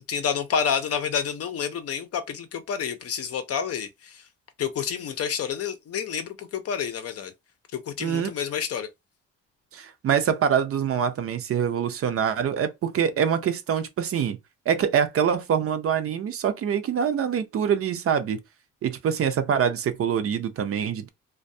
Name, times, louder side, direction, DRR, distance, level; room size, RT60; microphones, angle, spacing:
voice 1, 0.1-4.2 4.6-7.3 7.7-8.9, left 7 dB, 55° left, 0.6 m, -29 dB
voice 2, 8.0-8.3 9.7-14.4 14.7-18.4 18.8-21.1, right 8 dB, 50° right, 0.5 m, -25 dB
2.2 x 2.2 x 2.6 m
cardioid pair, 90°, 30 cm